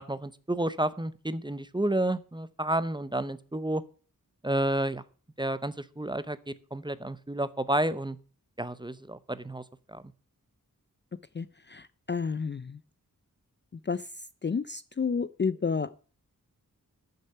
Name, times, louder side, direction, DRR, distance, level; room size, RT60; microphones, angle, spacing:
voice 1, 0.0-3.8 4.4-5.0 5.4-6.4 6.7-8.2 8.6-10.0, right 1 dB, 15° right, 15 dB, 0.7 m, -30 dB
voice 2, 11.3-12.8 13.9-14.0 14.4-16.0, left 5 dB, 35° left, 16 dB, 0.4 m, -31 dB
11.5 x 6.7 x 5.6 m, 0.40 s
wide cardioid pair, 65°, 34 cm